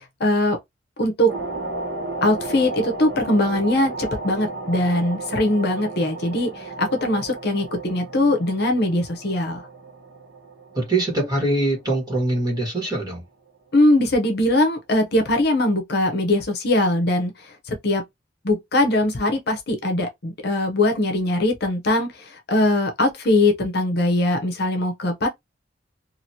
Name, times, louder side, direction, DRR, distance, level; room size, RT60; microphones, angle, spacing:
voice 1, 0.2-0.6 1.0-1.3 2.2-9.7 13.7-18.0 18.4-25.3, left 1 dB, 60° left, 0.8 m, -21 dB
sound 1, 1.3-12.3 12.6-12.9, right 2 dB, 75° right, 1.1 m, -34 dB
voice 2, 10.7-13.2, right 2 dB, 20° right, 1.5 m, -23 dB
2.9 x 2.5 x 2.8 m
head